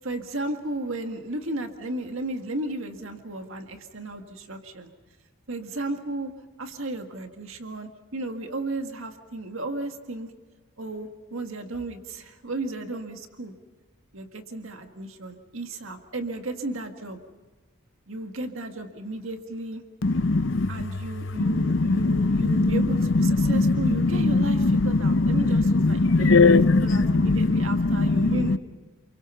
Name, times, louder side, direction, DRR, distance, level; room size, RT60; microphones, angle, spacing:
voice 1, 0.0-4.9 5.5-6.3 6.6-10.3 10.8-13.5 14.1-17.2 18.1-19.8 20.7-28.6, right 2 dB, 70° right, 6 dB, 1.9 m, -34 dB
voice 2, 20.0-20.8 21.4-28.6, left 3 dB, 60° left, 13 dB, 0.7 m, -21 dB
29.0 x 23.5 x 5.7 m, 1.2 s
head